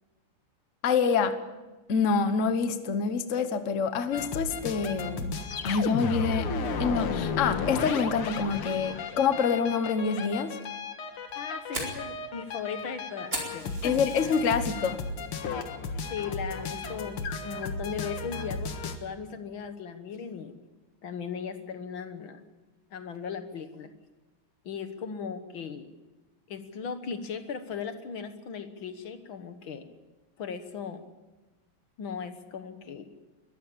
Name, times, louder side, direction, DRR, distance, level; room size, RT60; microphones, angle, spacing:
voice 1, 0.8-1.3 1.9-5.3 5.6-6.5 6.8-10.6 13.8-15.0, left 5 dB, 40° left, 9 dB, 1.3 m, -26 dB
sound 1, 4.1-19.0, left 4 dB, 85° left, 2.4 m, -34 dB
Fire, 11.1-14.7 15.1-15.5 15.9-16.0 16.5-16.9, right 1 dB, 40° right, 5.0 m, -38 dB
voice 2, 11.4-14.0 14.2-14.4 16.1-20.6 21.0-22.4 22.9-23.9 24.6-25.9 26.5-29.9 30.4-31.0 32.0-33.1, left 6 dB, 65° left, 9 dB, 2.0 m, -37 dB
22.0 x 14.0 x 8.6 m, 1.2 s
omnidirectional pair, 2.4 m